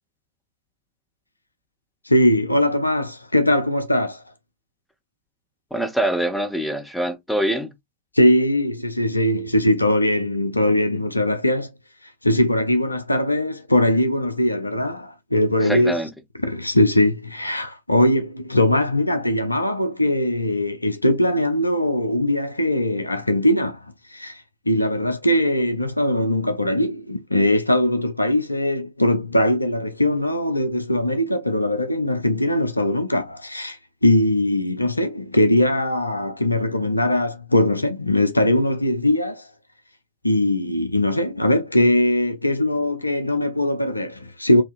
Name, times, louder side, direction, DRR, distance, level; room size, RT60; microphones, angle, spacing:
voice 1, 2.1-4.2 8.1-11.7 12.0-15.9 16.4-39.5 40.2-44.6, left 1 dB, 85° left, 0.5 m, -21 dB
voice 2, 5.7-7.7 15.6-16.1, right 1 dB, 5° left, 1.0 m, -24 dB
5.5 x 2.7 x 2.4 m
figure-of-eight pair, 90°, 0 cm